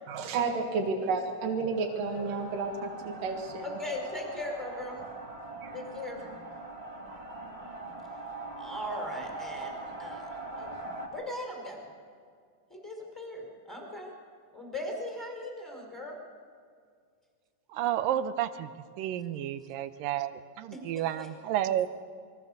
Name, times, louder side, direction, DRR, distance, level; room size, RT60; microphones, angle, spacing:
voice 1, 0.1-3.7 5.6-5.8, right 4 dB, 75° right, 1 dB, 3.4 m, -31 dB
sound 1, 2.0-11.1, right 3 dB, 20° right, 3.2 m, -42 dB
voice 2, 3.6-5.0 5.7-6.4 8.6-9.7 10.0-10.3 10.6-10.7 11.1-11.8 12.7-14.1 14.5-16.1 20.7-20.8 21.2-21.3, left 1 dB, ahead, 0 dB, 5.1 m, -38 dB
voice 3, 17.7-18.7 19.0-21.9, right 11 dB, 90° right, 11 dB, 2.6 m, -31 dB
27.0 x 23.0 x 6.8 m, 2.1 s
omnidirectional pair, 3.9 m